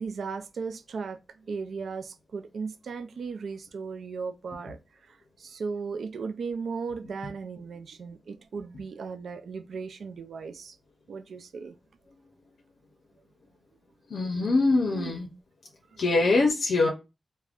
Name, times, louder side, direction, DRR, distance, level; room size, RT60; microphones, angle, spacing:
voice 1, 0.0-10.8 11.1-11.8 14.9-15.1 15.9-16.0, right 5 dB, 85° right, 0.3 m, -36 dB
voice 2, 14.1-15.3 16.0-16.9, left 3 dB, 80° left, 0.5 m, -23 dB
3.4 x 2.1 x 2.4 m
wide cardioid pair, 85°, 0 cm